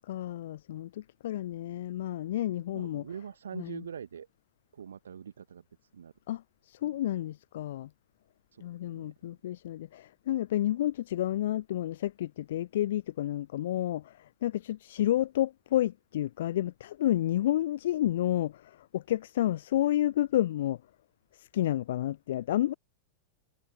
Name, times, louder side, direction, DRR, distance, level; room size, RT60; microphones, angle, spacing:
voice 1, 0.1-3.1 3.5-3.8 6.3-7.9 8.6-20.8 21.3-22.7, left 13 dB, 60° left, 0.8 m, -30 dB
voice 2, 2.7-4.3 4.7-5.6 5.9-6.1 6.8-6.9 8.6-9.1, right 7 dB, 70° right, 2.0 m, -43 dB
figure-of-eight pair, 90°, 0 cm